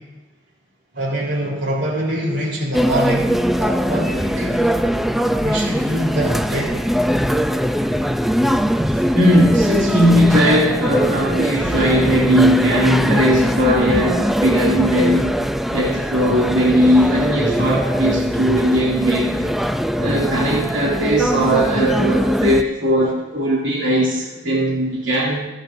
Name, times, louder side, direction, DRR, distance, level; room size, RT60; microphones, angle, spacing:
voice 1, 0.9-4.7 5.4-6.8 11.5-11.7, right 1 dB, 55° right, -3 dB, 3.7 m, -24 dB
sound 1, 2.7-22.6, equal, ahead, 0.4 m, -20 dB
voice 2, 9.1-15.3 15.7-19.7 20.0-25.4, equal, 80° right, -6 dB, 2.5 m, -18 dB
27.0 x 9.1 x 2.6 m, 1.1 s
head